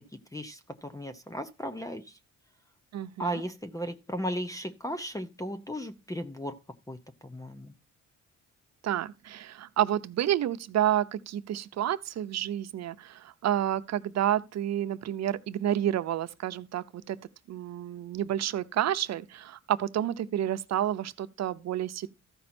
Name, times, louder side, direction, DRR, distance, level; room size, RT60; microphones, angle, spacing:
voice 1, 0.3-2.2 3.2-6.6 6.9-7.0 7.2-7.7, equal, 10° left, 0.8 m, -36 dB
voice 2, 2.9-3.5 8.8-17.2 17.5-22.1, right 11 dB, 60° right, 0.7 m, -30 dB
14.0 x 5.3 x 4.4 m
cardioid pair, 90°, 30 cm